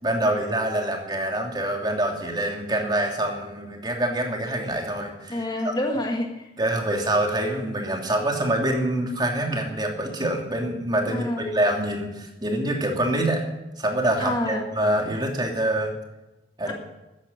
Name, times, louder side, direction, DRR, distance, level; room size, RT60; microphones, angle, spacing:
voice 1, 0.0-5.7 6.6-13.4 13.8-15.9 16.6-16.7, right 1 dB, 25° right, 2 dB, 2.9 m, -25 dB
voice 2, 5.3-6.5 11.1-11.5 14.2-14.7, left 1 dB, 25° left, 1 dB, 1.8 m, -27 dB
14.5 x 10.0 x 9.6 m, 1.0 s
head